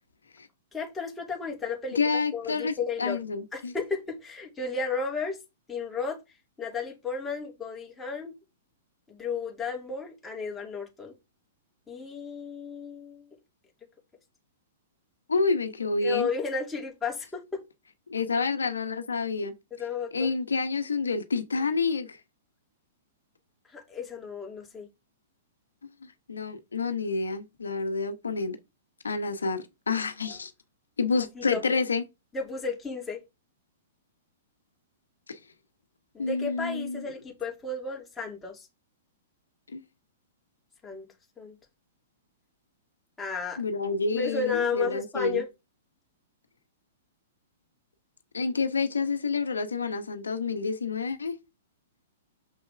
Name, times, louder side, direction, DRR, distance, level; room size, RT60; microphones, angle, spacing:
voice 1, 0.7-2.0 2.3-3.2 3.5-5.4 5.7-6.2 6.6-8.3 9.1-11.1 11.9-13.2 16.0-17.6 19.8-20.3 23.7-24.9 30.2-30.4 31.3-31.6 32.3-33.2 36.1-38.7 40.8-41.1 41.4-41.5 43.2-43.6 44.1-45.5, left 5 dB, 10° left, 2.6 m, -33 dB
voice 2, 1.9-3.7 15.3-16.3 18.1-19.5 20.1-22.2 26.3-28.6 29.0-30.5 31.0-32.0 35.3-35.4 36.2-37.0 39.7-39.8 43.6-45.4 48.3-51.3, left 4 dB, 85° left, 1.1 m, -28 dB
6.7 x 5.6 x 3.5 m
hypercardioid pair, 115°, 0 cm